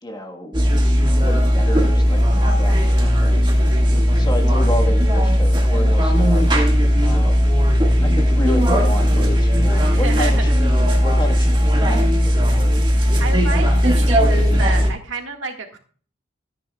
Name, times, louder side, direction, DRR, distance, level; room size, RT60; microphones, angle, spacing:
voice 1, 0.0-0.6 1.1-3.5 4.1-6.5 7.0-7.5 8.0-12.7, left 1 dB, 20° left, 3 dB, 1.5 m, -30 dB
sound 1, 0.5-14.9, equal, 25° right, 1.9 m, -16 dB
voice 2, 9.9-10.6 13.2-15.8, right 3 dB, 75° right, 3 dB, 1.9 m, -30 dB
14.0 x 9.7 x 2.4 m, 0.42 s
head